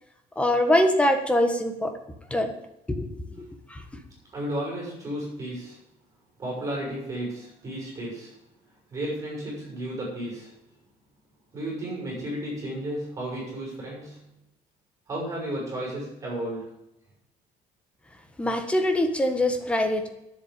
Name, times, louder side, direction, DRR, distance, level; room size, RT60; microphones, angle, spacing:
voice 1, 0.4-1.9 2.3-2.5 2.9-3.1 3.4-3.8 18.4-20.1, left 1 dB, 10° left, 6 dB, 1.4 m, -23 dB
voice 2, 4.3-5.8 6.4-8.4 8.9-10.5 11.5-14.2 15.1-16.8, right 1 dB, 25° right, -3 dB, 5.8 m, -33 dB
10.0 x 7.7 x 9.1 m, 0.86 s
cardioid pair, 175°, 14 cm